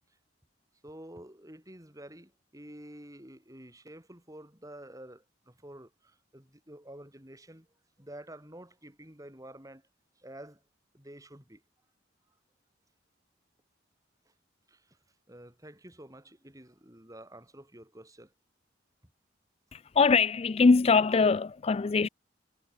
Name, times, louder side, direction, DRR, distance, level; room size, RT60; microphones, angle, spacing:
voice 1, 0.8-7.7 8.0-9.9 10.2-10.6 10.9-11.6 14.7-15.0 15.3-18.3, right 1 dB, 20° right, 5.9 m, -49 dB
voice 2, 19.7-22.1, left 4 dB, 30° left, 0.4 m, -23 dB
head